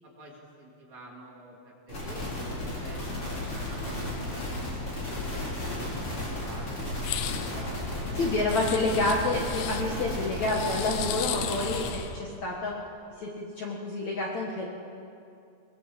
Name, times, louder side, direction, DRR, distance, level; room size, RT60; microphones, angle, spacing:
voice 1, 0.0-3.3 3.7-7.0 7.5-8.3, right 1 dB, 45° right, -3 dB, 4.4 m, -49 dB
sound 1, 1.9-11.9, left 1 dB, 30° left, 6.1 m, -34 dB
sound 2, 7.0-7.5 8.5-9.8 10.4-12.2, left 12 dB, 85° left, 1.9 m, -36 dB
voice 2, 8.2-12.7 13.2-14.7, left 2 dB, 55° left, -2 dB, 2.4 m, -29 dB
21.5 x 21.5 x 7.7 m, 2.5 s
omnidirectional pair, 5.0 m